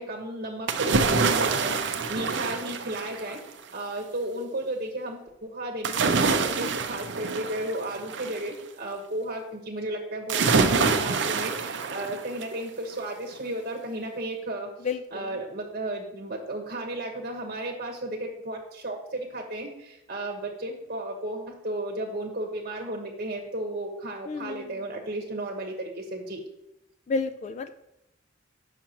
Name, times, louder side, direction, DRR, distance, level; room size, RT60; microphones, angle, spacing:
voice 1, 0.0-3.4 3.7-14.7 15.1-26.4, right 1 dB, 50° right, 0 dB, 1.0 m, -34 dB
Foley Natural Water Jump Mono, 0.7-3.5 5.8-8.5 10.3-12.6 13.0-13.1, right 4 dB, 65° right, 0.5 m, -26 dB
voice 2, 14.8-15.3 24.3-24.6 27.1-27.7, left 4 dB, 35° left, 10 dB, 0.3 m, -30 dB
7.3 x 5.7 x 2.8 m, 0.88 s
head